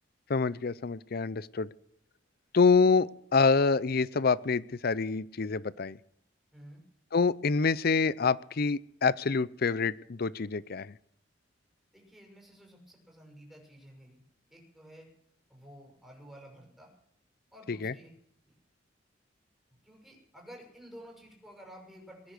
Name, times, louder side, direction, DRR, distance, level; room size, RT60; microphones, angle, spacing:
voice 1, 0.3-1.7 2.5-6.0 7.1-10.9 17.7-17.9, left 4 dB, 55° left, 19 dB, 0.6 m, -26 dB
voice 2, 6.5-6.8 11.9-14.2 14.5-15.1 15.5-16.9 17.5-18.1 18.4-18.5 19.8-22.3, equal, ahead, -1 dB, 6.5 m, -52 dB
21.5 x 10.0 x 6.5 m, 0.70 s
head